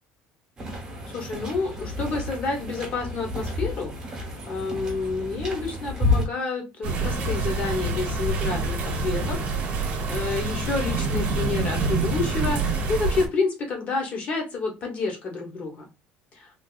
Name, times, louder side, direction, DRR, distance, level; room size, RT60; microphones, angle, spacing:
sound 1, 0.6-6.3, left 2 dB, 15° right, 1.1 m, -30 dB
voice 1, 1.1-9.4 9.7-15.8 16.3-16.5, left 3 dB, 30° left, 2 dB, 1.0 m, -29 dB
sound 2, 6.8-13.3, right 3 dB, 40° right, 0.9 m, -26 dB
3.3 x 2.7 x 2.4 m, 0.25 s
cardioid pair, 165°, 4 cm